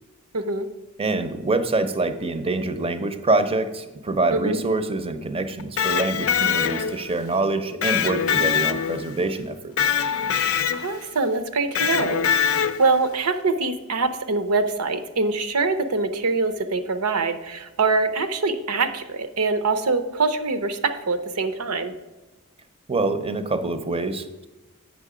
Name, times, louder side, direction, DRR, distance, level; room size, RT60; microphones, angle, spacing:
voice 1, 0.3-0.7 4.3-4.6 10.7-21.9, right 3 dB, 75° right, 11 dB, 0.7 m, -24 dB
voice 2, 1.0-9.9 22.9-24.5, right 2 dB, 25° right, 10 dB, 0.6 m, -25 dB
Electric guitar, 5.6-7.1 7.8-9.2 9.8-11.0 11.8-13.0, left 8 dB, 65° left, 0.5 m, -23 dB
8.3 x 6.1 x 4.9 m, 1.1 s
head